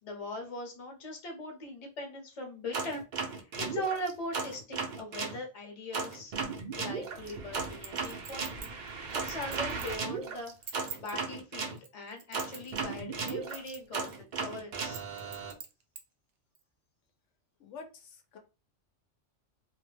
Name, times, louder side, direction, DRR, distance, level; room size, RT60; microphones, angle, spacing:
voice 1, 0.0-6.3 6.8-8.8 9.1-15.0, left 1 dB, 35° left, 1 dB, 0.8 m, -40 dB
sound 1, 2.7-5.4 5.9-11.8 12.3-15.5, right 4 dB, 55° right, 0.5 m, -36 dB
Chink clink, 7.8-10.0 10.5-11.1 11.8-12.9 13.2-13.8 14.1-14.2 14.8-16.0 16.6-16.7, right 7 dB, 75° right, 0.9 m, -44 dB
voice 2, 17.6-18.4, left 4 dB, 80° left, 5 dB, 0.9 m, -48 dB
2.3 x 2.1 x 3.2 m, 0.30 s
omnidirectional pair, 1.3 m